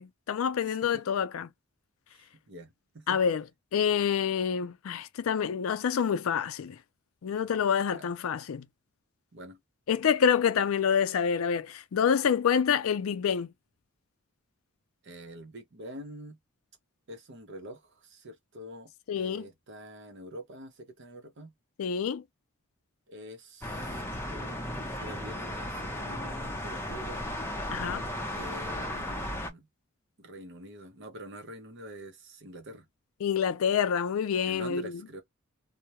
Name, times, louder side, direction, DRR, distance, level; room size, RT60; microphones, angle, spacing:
voice 1, 0.0-1.5 3.1-3.4 3.7-6.8 7.2-8.6 9.9-13.5 19.1-19.5 21.8-22.2 27.7-28.0 33.2-34.9, left 7 dB, 75° left, 0.4 m, -27 dB
voice 2, 0.7-1.0 2.1-3.2 7.9-8.1 9.3-9.6 15.0-16.4 17.1-18.9 19.2-21.5 23.1-27.3 28.3-29.7 30.2-32.9 34.5-35.2, equal, 55° right, 0.7 m, -46 dB
sound 1, 23.6-29.5, left 1 dB, 10° left, 0.5 m, -35 dB
2.3 x 2.0 x 2.8 m
head